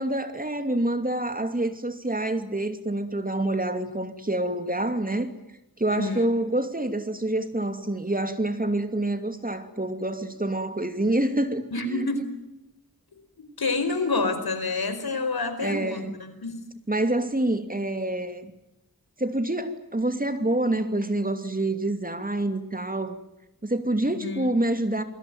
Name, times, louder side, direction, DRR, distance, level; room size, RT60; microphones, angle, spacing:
voice 1, 0.0-5.3 5.8-12.1 15.6-16.1 16.9-18.5 19.2-23.2 23.6-25.0, right 1 dB, 25° right, 9 dB, 2.8 m, -27 dB
voice 2, 5.9-6.3 11.7-12.3 13.4-16.6 24.1-24.6, left 3 dB, 90° left, 9 dB, 4.7 m, -28 dB
28.0 x 21.5 x 9.3 m, 0.86 s
wide cardioid pair, 85°, 36 cm